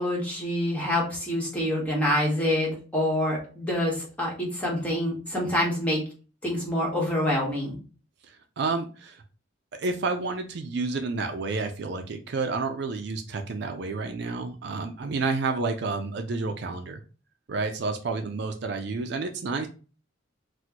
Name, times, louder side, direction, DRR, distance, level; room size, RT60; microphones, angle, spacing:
voice 1, 0.0-6.0 6.4-7.8, left 1 dB, 5° left, -3 dB, 1.1 m, -26 dB
voice 2, 8.2-9.2 9.7-17.0 17.5-19.7, right 3 dB, 60° right, 5 dB, 0.4 m, -30 dB
4.2 x 2.1 x 2.9 m, 0.36 s
head